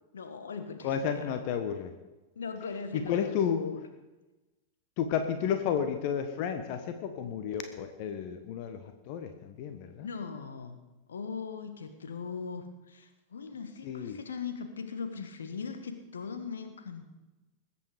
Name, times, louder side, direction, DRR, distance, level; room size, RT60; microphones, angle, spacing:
voice 1, 0.1-1.2 2.3-3.8 10.0-10.8 11.1-17.1, left 5 dB, 70° left, 8 dB, 1.4 m, -39 dB
voice 2, 0.8-1.9 2.9-3.6 5.0-10.1 13.8-14.2, left 8 dB, 45° left, 8 dB, 1.2 m, -32 dB
20.5 x 8.5 x 5.1 m, 1.1 s
figure-of-eight pair, 90°, 0 cm